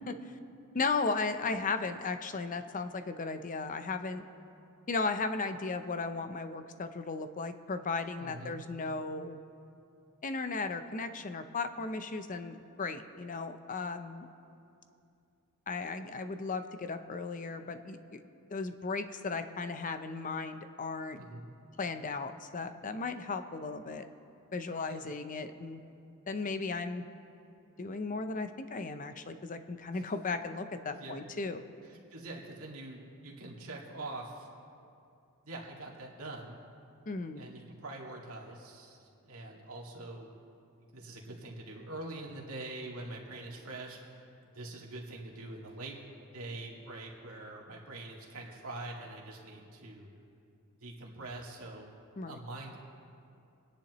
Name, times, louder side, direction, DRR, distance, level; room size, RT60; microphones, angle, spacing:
voice 1, 0.7-4.3 4.9-9.4 10.2-14.3 15.7-18.2 18.5-21.2 21.8-24.0 24.5-25.8 26.3-27.1 27.8-31.6 37.1-37.4 52.2-52.4, left 4 dB, 35° left, 9 dB, 0.6 m, -36 dB
voice 2, 8.2-8.6 21.2-21.5 24.9-25.1 29.9-30.1 30.9-31.2 31.8-34.5 35.4-36.6 37.3-40.4 40.9-46.0 46.3-50.1 50.8-51.9 52.3-52.8, right 2 dB, 70° right, -2 dB, 2.1 m, -44 dB
27.5 x 10.0 x 3.1 m, 2.6 s
head